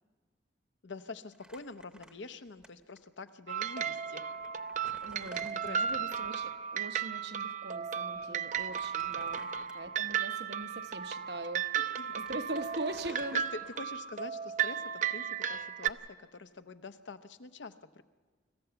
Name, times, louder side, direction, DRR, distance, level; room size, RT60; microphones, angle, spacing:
voice 1, 0.8-4.2 5.6-6.1 8.1-8.4 9.3-9.7 11.9-12.2 13.0-18.0, left 3 dB, 75° left, 10 dB, 0.8 m, -46 dB
Crumpling crinkling, 1.3-2.7 3.0-3.1 3.9-4.0 4.4-6.2 8.4-10.0 10.6-10.8 11.7-11.8 12.0-14.1, right 1 dB, 5° right, 0.9 m, -55 dB
sound 1, 3.5-15.9, right 8 dB, 40° right, 0.5 m, -35 dB
voice 2, 5.0-11.6 12.1-13.4, right 2 dB, 60° right, 8 dB, 0.9 m, -41 dB
26.0 x 14.5 x 6.9 m, 1.4 s
head